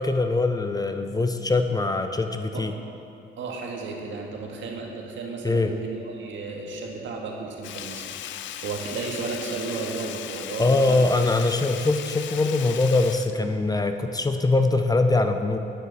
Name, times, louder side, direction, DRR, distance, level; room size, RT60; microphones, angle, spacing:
voice 1, 0.0-2.7 5.4-5.7 10.6-15.6, left 2 dB, 20° left, 7 dB, 0.5 m, -22 dB
voice 2, 3.4-11.0, right 4 dB, 70° right, 0 dB, 1.6 m, -34 dB
Sink (filling or washing), 7.6-14.2 14.5-14.6, left 10 dB, 70° left, 0.5 m, -37 dB
9.6 x 9.3 x 4.0 m, 2.7 s
cardioid pair, 90°, 20 cm